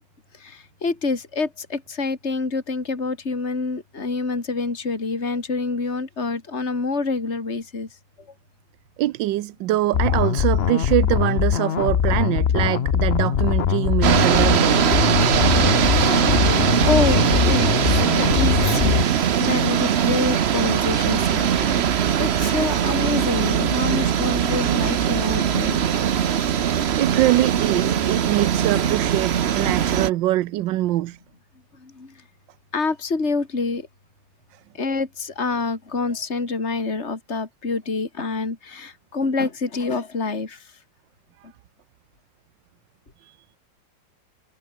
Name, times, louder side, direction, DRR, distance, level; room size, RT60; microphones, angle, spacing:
voice 1, 0.3-7.9 16.2-25.8 31.7-32.2 32.7-33.9 34.7-40.7, left 3 dB, 35° left, 3.4 m, -27 dB
voice 2, 9.0-14.8 26.5-31.2 43.2-43.4, right 15 dB, 85° right, 1.4 m, -23 dB
sound 1, 9.9-19.0, left 9 dB, 50° left, 0.7 m, -21 dB
sound 2, 14.0-30.1, right 9 dB, 50° right, 0.8 m, -21 dB
omnidirectional pair, 1.9 m